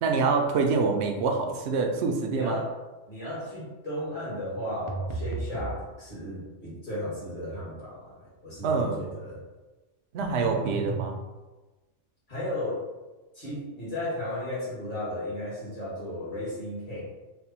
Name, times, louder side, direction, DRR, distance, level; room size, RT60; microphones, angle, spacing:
voice 1, 0.0-2.6 8.6-9.0 10.1-11.2, right 4 dB, 70° right, 3 dB, 0.8 m, -26 dB
voice 2, 2.3-2.7 3.1-9.4 12.3-12.8 13.3-17.0, left 1 dB, 45° left, -7 dB, 1.6 m, -35 dB
sound 1, 4.9-5.8 10.2-11.1, right 3 dB, 55° right, 0.3 m, -33 dB
3.2 x 2.2 x 4.2 m, 1.2 s
omnidirectional pair, 1.2 m